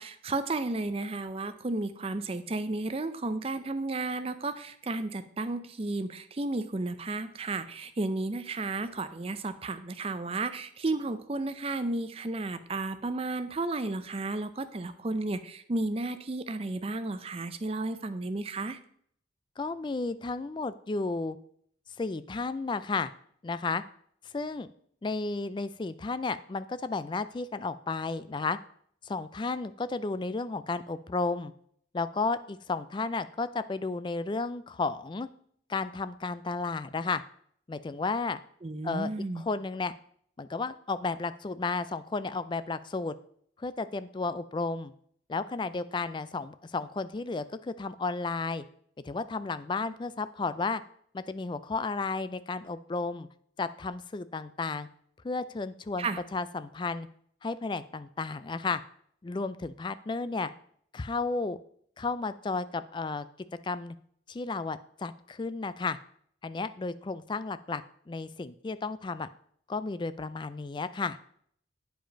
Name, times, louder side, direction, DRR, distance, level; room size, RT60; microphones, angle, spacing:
voice 1, 0.0-18.8 38.6-39.5 56.0-56.2, right 2 dB, 30° right, 11 dB, 0.5 m, -33 dB
voice 2, 19.6-21.4 22.0-23.1 23.4-23.8 24.3-24.7 25.0-28.6 29.0-31.5 31.9-35.3 35.7-37.2 37.7-38.4 38.8-39.9 40.4-43.1 43.6-44.9 45.3-48.6 49.0-50.8 51.1-53.3 53.6-54.9 55.2-57.1 57.4-58.8 59.2-60.5 60.9-61.6 62.0-63.3 63.6-64.0 64.3-66.0 66.4-67.8 68.1-69.3 69.7-71.2, left 3 dB, 25° left, 13 dB, 0.3 m, -33 dB
9.1 x 5.1 x 5.1 m, 0.64 s
head